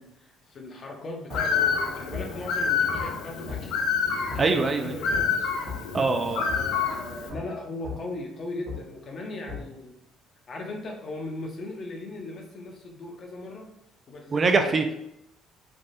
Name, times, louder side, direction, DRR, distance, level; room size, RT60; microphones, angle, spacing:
voice 1, 0.0-3.7 4.3-5.6 6.4-10.0 10.5-13.7 14.1-14.8, left 2 dB, 45° left, 1 dB, 0.7 m, -38 dB
Bird, 1.3-7.3, left 6 dB, 85° left, 0.4 m, -28 dB
sound 1, 1.3-1.4 2.1-2.3 2.9-3.1 3.5-3.6 4.3-4.4 5.1-5.2 5.7-5.8 6.5-6.6 7.3-7.4 7.8-8.0 8.7-8.8 9.5-9.6, left 4 dB, 65° right, 0.8 m, -35 dB
voice 2, 4.4-5.0 5.9-6.4 14.3-14.9, right 3 dB, 35° right, 6 dB, 0.3 m, -23 dB
3.4 x 2.4 x 2.6 m, 0.83 s
cardioid pair, 100°, 0 cm